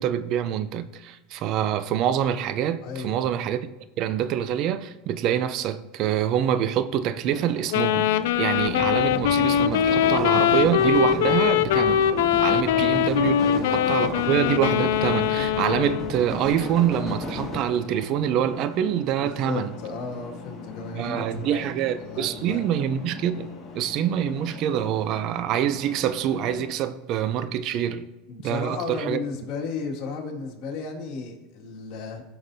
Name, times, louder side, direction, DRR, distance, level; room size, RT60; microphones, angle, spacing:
voice 1, 0.0-3.7 4.0-8.1 8.4-12.1 12.4-19.7 20.9-28.1 28.4-29.2, right 10 dB, 50° right, 0.5 m, -26 dB
voice 2, 2.8-3.3 12.7-13.1 13.4-13.8 19.2-21.7 22.0-22.7 28.3-32.2, left 4 dB, 55° left, 2.1 m, -34 dB
sound 1, 7.2-26.7, left 4 dB, 30° left, 2.2 m, -42 dB
Wind instrument woodwind instrument, 7.7-16.2, left 10 dB, 80° left, 0.4 m, -22 dB
sound 2, 8.5-17.6, left 1 dB, 15° left, 2.3 m, -34 dB
16.0 x 5.9 x 2.7 m
supercardioid pair, 120°, 0 cm